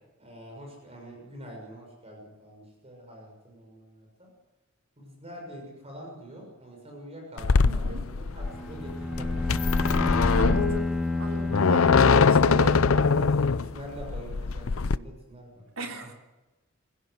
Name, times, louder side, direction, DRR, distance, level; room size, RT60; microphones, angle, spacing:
voice 1, 0.2-4.3 5.0-9.3 11.3-15.6, right 1 dB, 30° right, 1 dB, 6.3 m, -44 dB
sound 1, 7.4-15.0, left 5 dB, 90° left, 0.6 m, -23 dB
voice 2, 7.6-8.0 10.3-10.9 11.1-12.8 15.8-16.1, right 2 dB, 80° right, 2 dB, 3.6 m, -36 dB
Bowed string instrument, 8.5-13.3, left 2 dB, 5° right, 2.4 m, -30 dB
25.5 x 16.5 x 8.1 m, 1.1 s
head